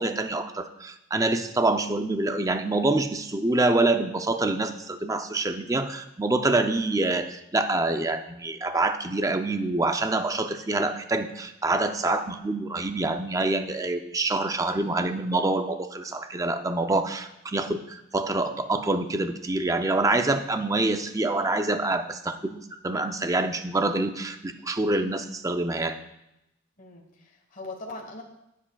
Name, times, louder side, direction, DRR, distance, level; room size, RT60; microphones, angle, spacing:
voice 1, 0.0-26.0, right 2 dB, 20° right, 7 dB, 0.5 m, -26 dB
voice 2, 26.8-28.2, left 2 dB, 45° left, 0 dB, 1.3 m, -41 dB
19.0 x 7.5 x 2.3 m, 0.85 s
head